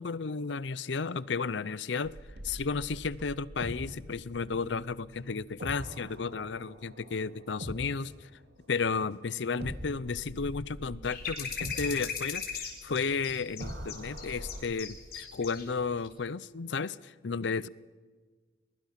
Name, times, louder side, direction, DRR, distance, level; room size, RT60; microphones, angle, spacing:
voice 1, 0.0-2.2 2.4-8.3 8.7-17.7, left 5 dB, 75° left, 0.6 m, -33 dB
sound 1, 2.0-9.1 9.6-14.6, equal, 60° right, 2.3 m, -44 dB
sound 2, 11.0-15.6 16.0-16.1, left 7 dB, 55° left, 3.8 m, -37 dB
22.5 x 22.0 x 5.8 m
head